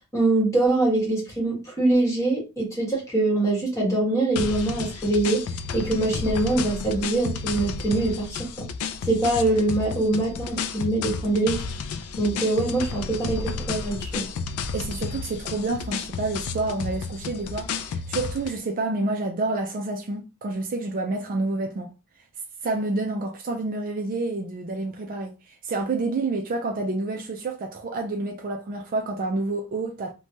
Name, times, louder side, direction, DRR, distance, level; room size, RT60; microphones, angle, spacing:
voice 1, 0.1-5.4 5.7-8.7 9.1-11.6 12.1-14.3, right 2 dB, 15° left, 1.3 m, -23 dB
sound 1, 4.4-18.6, left 5 dB, 70° left, 0.3 m, -32 dB
voice 2, 14.7-21.9 22.6-30.1, right 2 dB, 40° right, 0.4 m, -29 dB
3.0 x 2.2 x 2.6 m
head